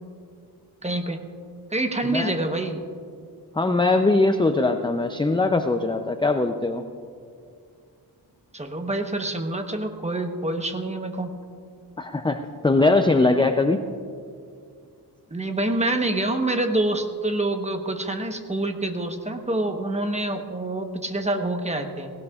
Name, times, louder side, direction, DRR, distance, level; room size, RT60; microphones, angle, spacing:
voice 1, 0.8-1.2 1.7-2.8 8.5-11.3 15.3-22.1, right 2 dB, 15° right, 5 dB, 1.0 m, -26 dB
voice 2, 2.0-2.4 3.5-6.9 12.0-13.9, left 2 dB, 10° left, 7 dB, 0.4 m, -21 dB
18.5 x 17.0 x 2.4 m, 2.3 s
wide cardioid pair, 120°, 41 cm